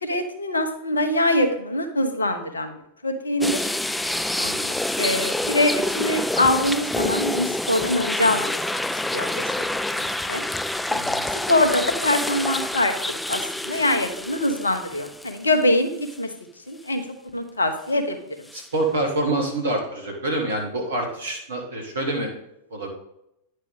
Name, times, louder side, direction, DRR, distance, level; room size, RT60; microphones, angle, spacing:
voice 1, 0.0-2.8 3.0-3.7 5.0-8.6 9.1-9.4 9.9-10.4 11.5-16.3 16.7-17.0 17.3-18.2, left 1 dB, 75° left, 7 dB, 1.0 m, -23 dB
sound 1, 3.4-15.6 16.1-16.2 18.5-18.6, left 1 dB, 5° left, 0.3 m, -27 dB
voice 2, 4.4-4.7 10.9-11.3 18.5-22.3 22.7-22.9, right 2 dB, 70° right, 1 dB, 1.8 m, -26 dB
9.9 x 6.6 x 3.6 m, 0.81 s
figure-of-eight pair, 90°, 0 cm